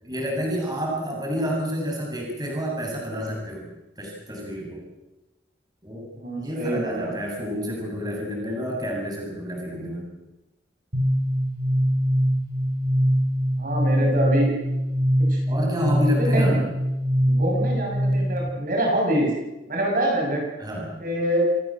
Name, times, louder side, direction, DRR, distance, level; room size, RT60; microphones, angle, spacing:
voice 1, 0.0-3.7 4.0-4.8 5.8-6.1 6.3-10.1 15.5-16.6 20.6-21.0, equal, 25° right, -1 dB, 7.6 m, -29 dB
voice 2, 6.1-7.1 13.6-14.5 15.3-15.4 16.1-16.6 17.2-19.3 19.7-20.4 21.0-21.4, right 1 dB, 50° right, 0 dB, 7.0 m, -25 dB
sound 1, 10.9-18.5, equal, 70° right, 5.9 m, -23 dB
28.0 x 18.5 x 7.6 m, 1.0 s
head